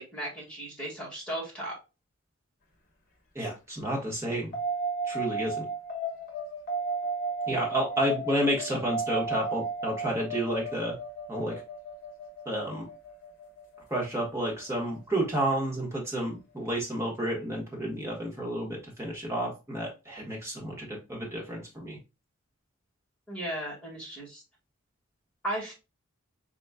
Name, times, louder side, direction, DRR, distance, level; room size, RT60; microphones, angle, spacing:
voice 1, 0.0-1.7 23.3-24.4 25.4-25.7, right 1 dB, 5° left, -5 dB, 1.8 m, -36 dB
voice 2, 3.3-4.5 5.1-5.7 7.5-11.0 11.3-11.5 12.4-12.9 13.9-22.0, right 1 dB, 10° right, -2 dB, 1.3 m, -31 dB
sound 1, 4.5-15.3, right 3 dB, 40° left, 1.1 m, -34 dB
4.2 x 3.8 x 2.2 m, 0.28 s
head